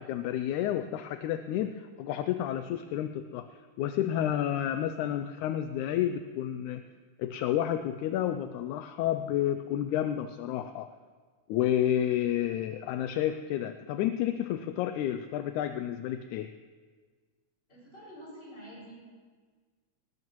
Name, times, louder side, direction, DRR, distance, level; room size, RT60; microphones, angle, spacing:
voice 1, 0.0-3.5 3.8-6.8 7.2-10.9 11.5-16.5, left 11 dB, 80° left, 9 dB, 1.9 m, -30 dB
voice 2, 17.7-18.9, equal, 20° left, -6 dB, 6.2 m, -47 dB
19.5 x 19.0 x 3.1 m, 1.5 s
omnidirectional pair, 3.5 m